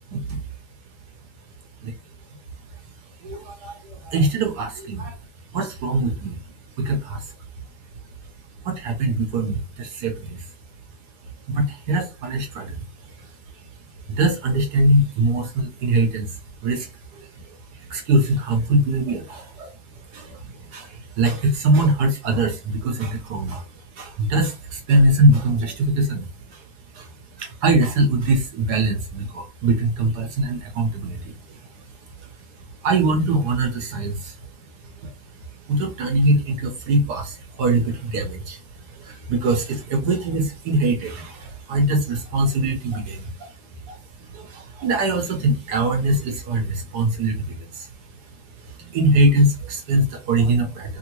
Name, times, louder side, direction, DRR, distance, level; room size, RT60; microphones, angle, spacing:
voice 1, 0.1-0.4 1.8-1.9 3.2-5.2 5.5-6.4 6.8-7.3 8.6-10.5 11.5-13.3 14.1-26.7 26.9-27.1 27.4-31.6 32.2-32.3 32.6-34.5 34.8-35.1 35.7-48.3 48.6-51.0, right 2 dB, 75° right, 1.4 m, -23 dB
3.2 x 2.7 x 2.9 m
omnidirectional pair, 1.8 m